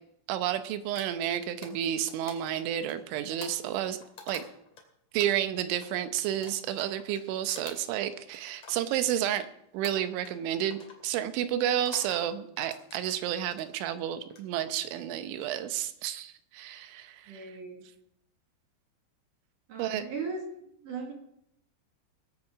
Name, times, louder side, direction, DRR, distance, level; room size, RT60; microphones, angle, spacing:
voice 1, 0.3-4.0 4.3-4.4 5.1-9.5 9.7-17.5 19.8-20.0, right 11 dB, 80° right, 10 dB, 3.2 m, -31 dB
sound 1, 1.0-4.8 5.2-9.5 9.8-10.4 10.7-11.0 11.7-12.2 12.6-13.7 14.2-14.6, left 4 dB, 40° left, 2.8 m, -48 dB
voice 2, 17.3-17.8 19.7-21.1, right 4 dB, 55° right, 1 dB, 2.8 m, -38 dB
20.5 x 8.5 x 4.9 m, 0.74 s
omnidirectional pair, 5.5 m